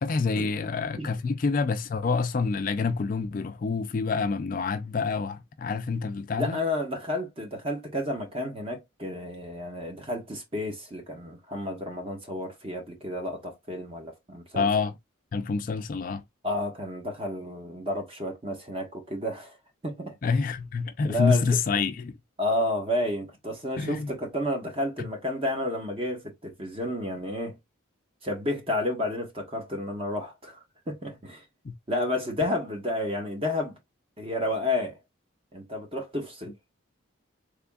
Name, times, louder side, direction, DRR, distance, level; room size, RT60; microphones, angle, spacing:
voice 1, 0.0-6.6 14.5-14.9 15.3-16.2 20.2-22.1 23.8-24.1 31.6-31.7, left 4 dB, 40° left, 0.3 m, -27 dB
voice 2, 6.4-14.7 16.4-19.6 19.8-20.2 21.0-21.4 22.4-27.6 28.2-31.4 31.9-33.8 34.2-35.0 35.5-36.5, left 1 dB, 25° right, 1.0 m, -31 dB
3.5 x 3.4 x 2.3 m
head